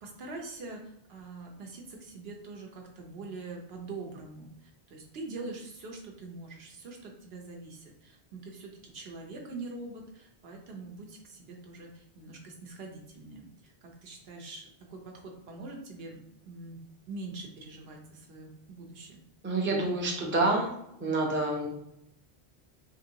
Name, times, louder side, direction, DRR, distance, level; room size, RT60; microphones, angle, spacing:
voice 1, 0.0-16.8 17.1-19.2, right 3 dB, 75° right, 1 dB, 0.9 m, -44 dB
voice 2, 19.4-20.7 21.0-21.7, right 2 dB, 15° right, -1 dB, 0.5 m, -27 dB
3.7 x 2.6 x 2.8 m, 0.79 s
omnidirectional pair, 1.1 m